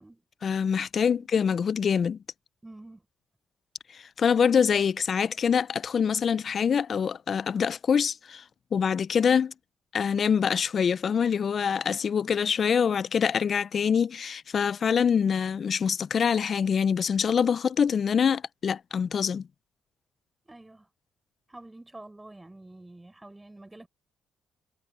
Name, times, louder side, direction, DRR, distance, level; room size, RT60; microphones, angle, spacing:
voice 1, 0.4-2.2 3.9-8.4 8.7-9.5 9.9-19.5, left 7 dB, 50° left, 0.4 m, -25 dB
voice 2, 2.6-3.1 20.4-20.9 21.5-23.9, right 2 dB, 15° right, 6.1 m, -48 dB
cardioid pair, 90°, 0 cm